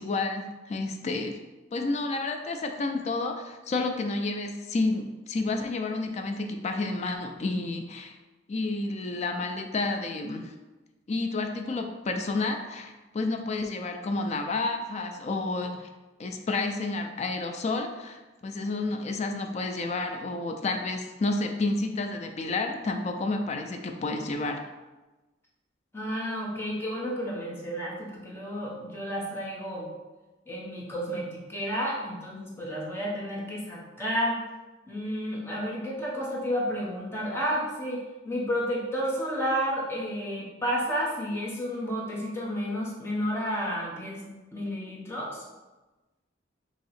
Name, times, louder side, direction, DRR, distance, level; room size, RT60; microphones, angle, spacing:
voice 1, 0.0-1.4 1.7-8.1 8.5-10.5 11.1-15.9 16.2-24.6, left 3 dB, 35° left, 5 dB, 0.3 m, -30 dB
voice 2, 25.9-29.9 30.5-34.4 34.9-38.0 38.2-45.4, equal, 15° left, -5 dB, 0.9 m, -31 dB
2.9 x 2.8 x 4.1 m, 1.1 s
head